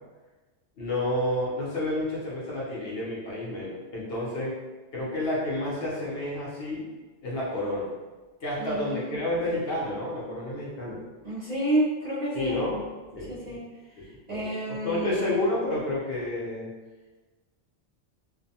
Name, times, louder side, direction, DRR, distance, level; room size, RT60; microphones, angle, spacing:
voice 1, 0.8-4.5 4.9-6.8 7.2-7.9 8.4-11.0 12.3-12.8 13.1-13.5 14.3-16.7, left 1 dB, 60° left, -6 dB, 0.9 m, -30 dB
voice 2, 8.6-9.2 11.2-12.6 13.2-13.6 14.0-15.2, right 1 dB, 65° right, -7 dB, 0.4 m, -30 dB
2.5 x 2.2 x 2.7 m, 1.3 s
omnidirectional pair, 1.2 m